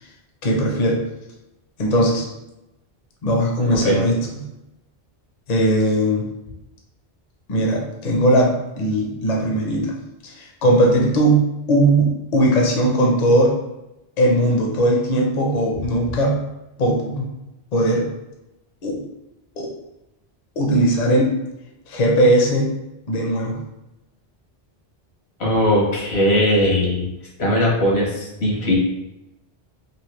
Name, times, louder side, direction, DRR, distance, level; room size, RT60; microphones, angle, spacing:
voice 1, 0.4-1.0 1.8-2.3 3.2-4.4 5.5-6.3 7.5-13.5 14.2-16.4 16.8-17.2 17.7-18.0 18.8-19.0 19.6-19.7 20.6-21.3 21.9-22.7 23.1-23.6, right 1 dB, 45° left, -1 dB, 0.7 m, -19 dB
voice 2, 25.4-27.1 27.4-28.8, left 1 dB, 80° left, -4 dB, 1.3 m, -19 dB
3.1 x 2.7 x 3.0 m, 0.93 s
omnidirectional pair, 1.1 m